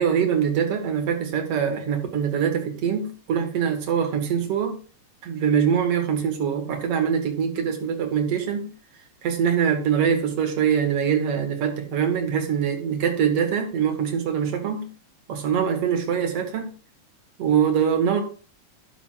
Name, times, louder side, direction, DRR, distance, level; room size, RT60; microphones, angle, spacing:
voice 1, 0.0-4.7 5.2-8.7 9.2-14.9 15.3-16.7 17.4-18.2, right 7 dB, 55° right, 4 dB, 2.6 m, -23 dB
12.0 x 9.2 x 2.5 m, 0.39 s
omnidirectional pair, 3.4 m